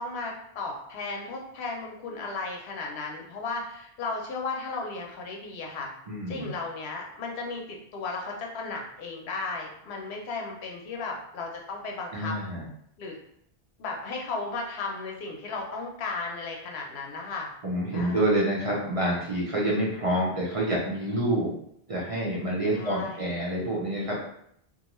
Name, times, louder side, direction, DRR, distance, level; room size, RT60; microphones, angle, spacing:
voice 1, 0.0-5.9 6.3-7.6 7.9-12.3 13.0-13.2 13.8-17.5 17.9-18.2 22.7-23.3, left 3 dB, 90° left, 0 dB, 0.9 m, -35 dB
voice 2, 6.1-6.5 12.1-12.6 17.6-21.6 21.9-24.2, right 1 dB, 45° right, -4 dB, 0.5 m, -27 dB
2.5 x 2.2 x 2.9 m, 0.71 s
omnidirectional pair, 1.1 m